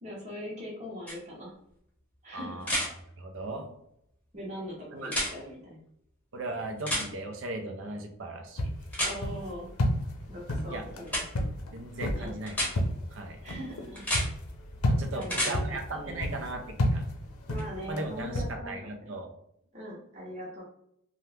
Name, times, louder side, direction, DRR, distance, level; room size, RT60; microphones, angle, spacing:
voice 1, 0.0-1.5 2.2-2.7 4.3-5.8 9.0-9.7 10.3-11.2 12.2-12.4 13.4-14.0 15.1-16.3 17.5-18.8 19.7-20.6, equal, 30° right, -5 dB, 0.8 m, -41 dB
sound 1, 1.1-1.2 2.6-2.9 5.0-5.3 6.9-7.1 8.9-9.1 11.1-11.2 12.5-12.7 14.0-14.3 15.2-15.5 17.6-17.7, equal, 5° left, 0.8 m, -29 dB
voice 2, 2.3-2.9 3.2-3.7 4.9-5.1 6.3-8.6 10.7-10.9 11.7-12.6 13.1-13.4 14.9-17.1 17.9-19.3, right 2 dB, 60° right, 4 dB, 0.5 m, -37 dB
sound 2, 8.6-18.5, left 1 dB, 75° left, 0.6 m, -32 dB
2.8 x 2.3 x 3.4 m, 0.73 s
head